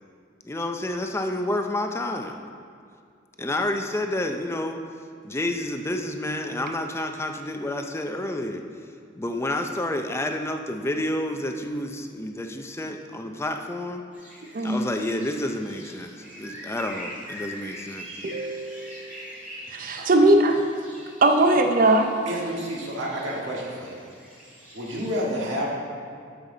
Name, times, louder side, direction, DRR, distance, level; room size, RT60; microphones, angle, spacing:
voice 1, 0.4-2.4 3.4-4.8 5.2-8.6 9.2-14.0 14.6-18.2, left 1 dB, 15° left, 5 dB, 0.4 m, -29 dB
sound 1, 14.1-25.1, equal, 5° right, 2.0 m, -43 dB
voice 2, 18.2-19.2 19.7-20.6 21.2-22.1, right 2 dB, 45° right, 5 dB, 0.6 m, -20 dB
voice 3, 22.3-23.9 24.7-25.7, equal, 65° right, -4 dB, 1.7 m, -30 dB
12.5 x 5.7 x 3.9 m, 2.3 s
head